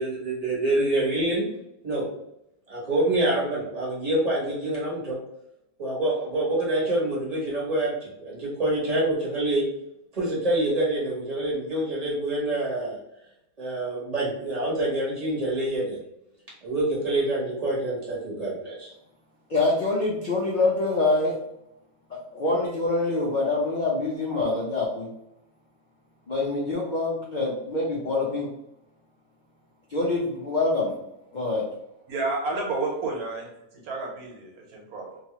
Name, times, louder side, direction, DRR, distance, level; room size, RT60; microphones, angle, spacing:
voice 1, 0.0-1.5 1.8-2.1 2.7-5.2 5.8-9.7 10.1-13.0 13.6-16.0 16.6-18.9, right 1 dB, 30° right, -5 dB, 1.0 m, -26 dB
voice 2, 19.5-21.3 22.1-25.1 26.3-28.5 29.9-30.9 31.3-31.6, left 2 dB, 75° left, -3 dB, 0.4 m, -25 dB
voice 3, 32.1-33.5 33.9-35.2, right 3 dB, 85° right, -1 dB, 1.3 m, -30 dB
2.9 x 2.3 x 2.8 m, 0.83 s
omnidirectional pair, 1.5 m